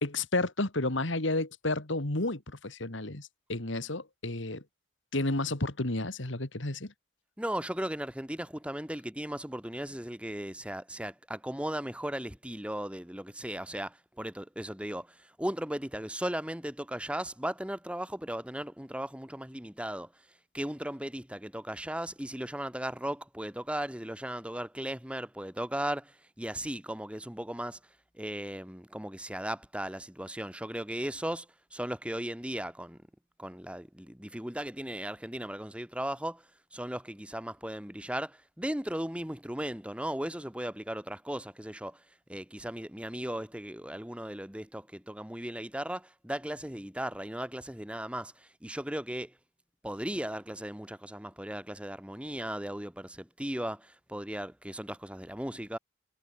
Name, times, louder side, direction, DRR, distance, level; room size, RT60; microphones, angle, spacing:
voice 1, 0.0-4.6 5.1-6.9, left 2 dB, 70° left, 2.4 m, -31 dB
voice 2, 7.4-20.1 20.5-27.8 28.2-31.5 31.7-33.0 33.4-36.4 36.7-42.0 42.3-49.3 49.8-55.8, right 1 dB, 5° right, 1.5 m, -37 dB
head